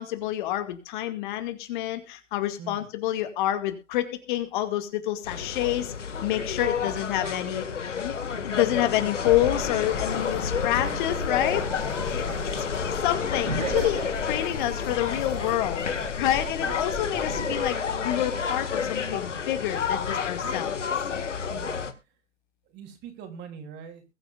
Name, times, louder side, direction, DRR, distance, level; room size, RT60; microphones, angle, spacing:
voice 1, 0.0-5.9 6.2-7.6 8.0-8.2 8.4-11.7 12.0-15.9 16.2-17.8 18.0-20.8, left 13 dB, 40° left, 8 dB, 2.3 m, -28 dB
sound 1, 5.2-21.9, left 6 dB, 75° left, 2.2 m, -30 dB
sound 2, 9.3-17.7, left 2 dB, ahead, 3.4 m, -40 dB
sound 3, 13.5-14.4 17.3-18.4 19.0-19.2, right 4 dB, 85° right, 4.2 m, -34 dB
voice 2, 21.5-21.8 22.7-24.0, right 7 dB, 30° right, 5 dB, 3.7 m, -42 dB
22.0 x 9.2 x 2.6 m, 0.27 s
hypercardioid pair, 125°, 37 cm